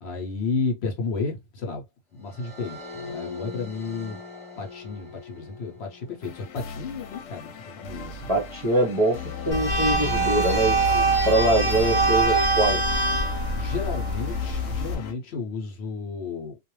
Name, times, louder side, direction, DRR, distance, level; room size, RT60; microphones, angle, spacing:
voice 1, 0.0-1.8 2.1-4.2 4.6-8.3 10.9-11.3 13.6-16.6, left 4 dB, 60° left, 0.9 m, -32 dB
sound 1, 2.2-13.6, left 3 dB, ahead, 0.9 m, -44 dB
sound 2, 6.2-15.1, left 6 dB, 85° left, 1.0 m, -39 dB
voice 2, 8.3-9.2 9.5-12.8, right 2 dB, 35° right, 0.6 m, -23 dB
sound 3, 9.5-14.9, right 2 dB, 35° left, 0.4 m, -23 dB
2.4 x 2.2 x 3.0 m
omnidirectional pair, 1.3 m